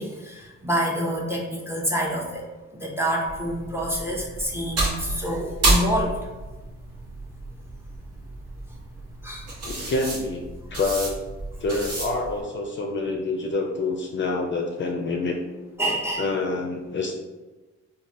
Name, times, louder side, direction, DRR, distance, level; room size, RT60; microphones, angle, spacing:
voice 1, 0.0-2.4 2.7-6.1 9.2-9.5 15.8-16.3, equal, 10° right, -2 dB, 0.6 m, -27 dB
sound 1, 3.3-12.4, right 2 dB, 50° right, 1.0 m, -30 dB
voice 2, 9.6-10.4 10.7-11.2 11.6-15.4 16.2-17.1, left 3 dB, 40° left, 1 dB, 0.4 m, -27 dB
3.2 x 2.2 x 2.5 m, 1.2 s
cardioid pair, 90°, 30 cm